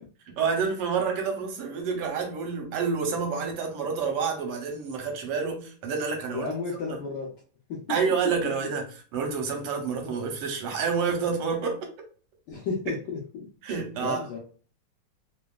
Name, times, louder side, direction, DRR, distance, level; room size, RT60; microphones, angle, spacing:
voice 1, 0.3-6.5 6.9-7.0 7.9-8.8 9.1-11.8 12.9-13.0 13.6-14.2, right 5 dB, 85° right, 1.7 m, -28 dB
voice 2, 6.3-7.3 7.7-8.0 8.6-8.7 12.5-13.5 14.0-14.4, left 4 dB, 70° left, 1.0 m, -33 dB
3.8 x 2.0 x 2.3 m
omnidirectional pair, 2.4 m